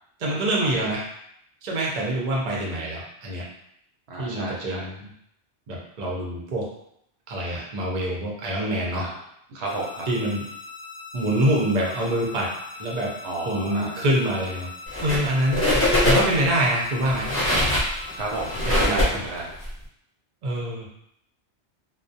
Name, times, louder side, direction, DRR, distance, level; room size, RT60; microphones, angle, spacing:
voice 1, 0.2-1.0 1.6-3.4 4.2-5.1 5.7-6.7 7.3-9.0 10.1-10.4 11.1-12.5 12.8-13.1 13.5-14.7 15.0-15.7 16.0-17.3 18.7-19.0 20.4-20.9, right 1 dB, 50° right, -2 dB, 0.6 m, -25 dB
voice 2, 4.1-4.9 8.9-9.2 9.5-10.0 13.2-14.1 18.1-19.5, right 2 dB, 75° right, -3 dB, 0.8 m, -32 dB
sound 1, 9.6-18.6, left 4 dB, 50° left, 0.8 m, -41 dB
sound 2, 14.9-15.3 15.5-16.5 17.0-19.7, left 1 dB, 15° left, 0.7 m, -22 dB
2.3 x 2.0 x 2.6 m, 0.75 s
omnidirectional pair, 1.2 m